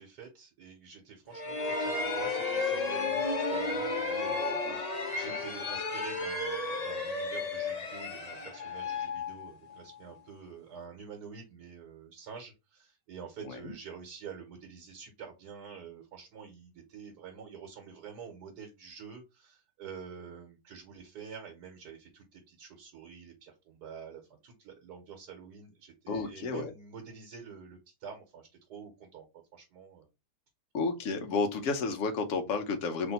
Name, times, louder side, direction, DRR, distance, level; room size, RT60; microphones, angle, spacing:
voice 1, 0.0-29.3 29.5-30.1, right 6 dB, 80° right, 2 dB, 1.4 m, -47 dB
sound 1, 1.3-10.0, left 3 dB, 40° left, 0.5 m, -33 dB
voice 2, 26.1-26.7 30.7-33.1, left 4 dB, 55° left, 4 dB, 1.1 m, -31 dB
3.4 x 2.6 x 4.0 m, 0.25 s
omnidirectional pair, 1.7 m